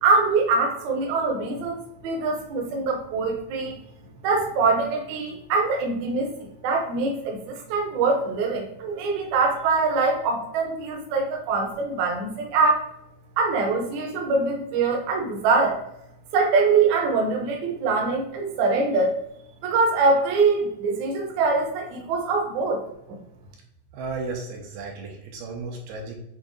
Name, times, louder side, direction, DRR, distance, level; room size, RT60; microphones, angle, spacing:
voice 1, 0.0-3.8 4.2-12.9 13.4-15.8 16.3-19.1 19.6-22.8 23.1-23.2, right 4 dB, 70° right, 1 dB, 1.9 m, -23 dB
voice 2, 23.9-26.2, right 3 dB, 85° right, 0 dB, 2.4 m, -34 dB
7.2 x 2.6 x 2.6 m, 0.80 s
omnidirectional pair, 3.8 m